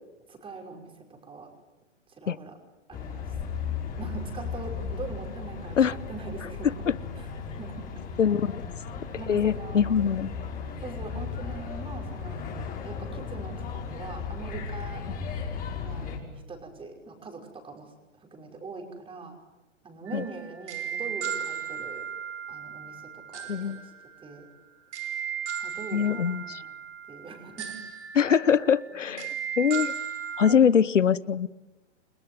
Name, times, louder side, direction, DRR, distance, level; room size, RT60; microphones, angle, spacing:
voice 1, 0.3-1.5 2.1-2.6 2.9-3.3 4.0-6.7 7.2-7.3 7.6-8.2 8.9-9.8 10.8-12.4 12.8-15.0 15.8-16.2 16.5-17.9 18.2-19.3 19.8-22.0 22.5-23.9 24.2-24.5 25.6-26.7 27.1-27.7 28.9-29.2 30.5-30.6, right 4 dB, 15° right, 3 dB, 5.6 m, -42 dB
sound 1, 2.9-16.2, left 5 dB, 25° left, 5.7 m, -36 dB
voice 2, 8.2-8.6 9.3-10.3 20.1-20.3 23.5-23.8 25.9-26.6 28.1-30.0 30.4-31.5, left 7 dB, 85° left, 20 dB, 1.0 m, -23 dB
sound 2, 20.1-30.5, right 8 dB, 65° right, 3.7 m, -36 dB
29.5 x 20.5 x 9.5 m, 1.1 s
hypercardioid pair, 125°, 36 cm